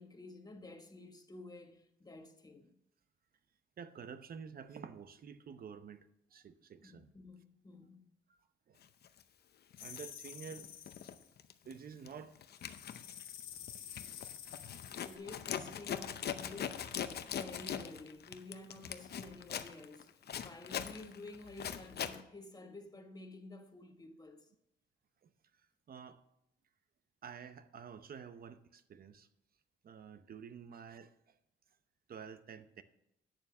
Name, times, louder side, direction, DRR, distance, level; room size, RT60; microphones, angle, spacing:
voice 1, 0.0-2.7 6.8-8.0 15.0-24.5, left 2 dB, 20° left, 1.4 m, -51 dB
voice 2, 3.8-7.1 8.3-8.4 8.7-8.8 9.8-10.7 11.6-12.4 25.2-25.3 25.9-26.2 27.2-29.3 29.8-31.3 32.1-32.8, right 7 dB, 50° right, 0.7 m, -50 dB
Zipper (clothing), 9.0-9.2 9.7-11.1 11.4-11.7 12.1-22.2, left 9 dB, 55° left, 0.7 m, -42 dB
sound 1, 9.8-11.3 12.6-15.2, left 9 dB, 85° left, 1.8 m, -50 dB
9.0 x 6.9 x 5.9 m
cardioid pair, 90°, 20 cm